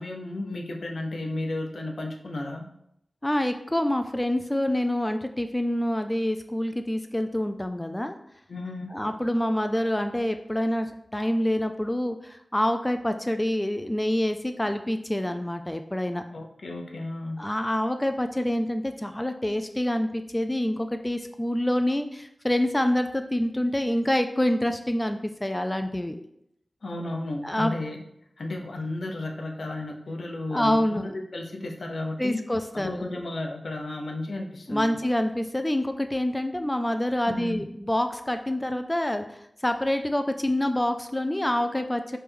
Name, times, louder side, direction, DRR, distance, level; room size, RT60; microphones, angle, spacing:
voice 1, 0.0-2.7 8.5-9.0 16.3-17.4 26.8-28.0 28.4-31.0 31.3-32.4 32.7-34.9 37.3-37.7, left 2 dB, 75° left, 2 dB, 0.7 m, -33 dB
voice 2, 3.2-8.2 8.9-16.2 17.4-26.2 27.4-27.7 30.5-31.1 32.2-33.2 34.7-42.2, left 1 dB, 15° left, 7 dB, 0.3 m, -27 dB
4.4 x 3.2 x 3.4 m, 0.75 s
cardioid pair, 40°, 0 cm